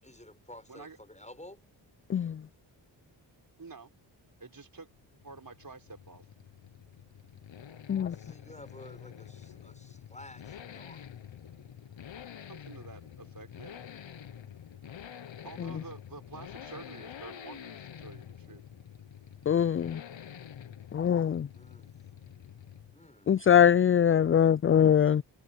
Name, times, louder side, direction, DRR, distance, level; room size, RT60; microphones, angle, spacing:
voice 1, 0.0-1.6 8.1-11.1 21.5-22.0 22.9-23.4, left 1 dB, 15° left, 7.5 m, -51 dB
voice 2, 2.1-2.4 7.9-8.2 15.6-15.8 19.5-20.0 20.9-21.5 23.3-25.2, left 9 dB, 30° left, 0.4 m, -23 dB
voice 3, 3.6-3.9 4.4-4.9 5.2-6.2 12.5-13.8 15.4-18.6, right 4 dB, 40° right, 5.7 m, -48 dB
Accelerating revving vroom, 4.9-23.1 23.3-23.4, left 9 dB, 65° left, 1.3 m, -48 dB
cardioid pair, 50°, 50 cm